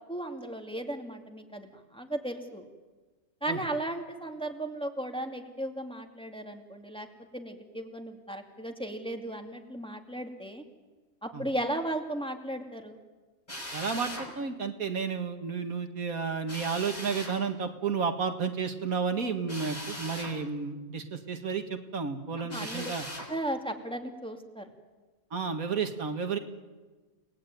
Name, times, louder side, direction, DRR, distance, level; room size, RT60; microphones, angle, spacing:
voice 1, 0.1-2.7 3.4-7.1 7.3-10.6 11.2-13.0 22.5-22.9 23.3-24.7, right 1 dB, 5° left, 3 dB, 2.4 m, -36 dB
Drill, 13.5-14.3 16.5-17.4 19.5-20.4 22.5-23.3, equal, 30° left, 5.9 m, -39 dB
voice 2, 13.7-23.1 25.3-26.4, right 5 dB, 90° right, 6 dB, 2.3 m, -32 dB
30.0 x 19.0 x 9.4 m, 1.3 s
omnidirectional pair, 1.4 m